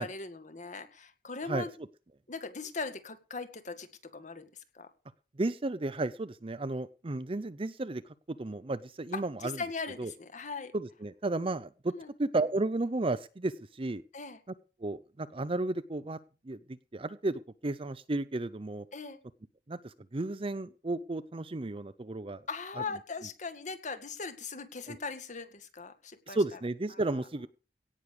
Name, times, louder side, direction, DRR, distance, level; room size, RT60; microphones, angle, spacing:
voice 1, 0.0-1.7 2.3-3.9 4.1-4.5 4.7-4.9 9.1-10.7 11.9-12.1 14.1-14.4 18.9-19.2 22.5-26.6 26.9-27.2, left 4 dB, 45° left, 10 dB, 1.9 m, -40 dB
voice 2, 5.4-8.0 8.3-9.6 10.0-10.1 10.7-11.9 12.2-14.0 14.8-16.2 16.4-16.6 16.9-18.8 19.7-22.4 24.9-25.0 26.3-27.5, right 2 dB, 30° right, 13 dB, 0.6 m, -33 dB
17.5 x 6.5 x 7.0 m, 0.34 s
head